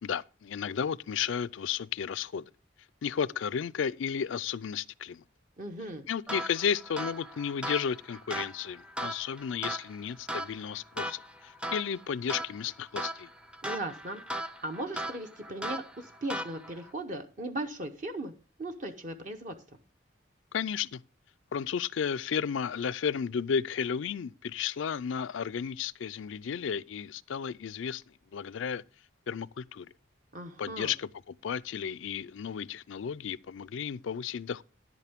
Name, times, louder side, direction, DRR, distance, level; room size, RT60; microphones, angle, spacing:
voice 1, 0.0-2.4 3.0-5.2 6.1-13.3 20.5-21.0 21.5-28.0 28.3-28.8 29.3-29.9 30.6-31.1 31.4-34.6, left 7 dB, 85° left, 0.4 m, -33 dB
voice 2, 5.6-6.0 13.6-18.3 18.6-19.5 30.3-30.9, right 1 dB, 40° right, 0.8 m, -38 dB
sound 1, 6.3-16.9, right 1 dB, 5° right, 0.5 m, -39 dB
10.5 x 8.3 x 3.5 m
head